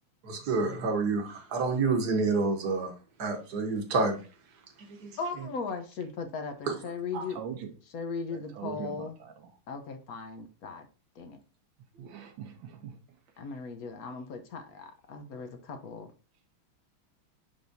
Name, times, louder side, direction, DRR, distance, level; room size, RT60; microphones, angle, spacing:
voice 1, 0.2-2.9 3.2-4.2 4.9-5.1 6.7-6.8 7.1-7.3, right 3 dB, 55° right, 1.5 m, -28 dB
voice 2, 5.2-7.4 7.8-9.2 9.7-10.9 11.2-11.4 13.4-16.1, left 4 dB, 60° left, 1.0 m, -38 dB
voice 3, 7.3-7.7 8.3-9.3 11.9-13.0, right 8 dB, 70° right, 1.5 m, -41 dB
10.5 x 3.5 x 2.6 m
omnidirectional pair, 2.3 m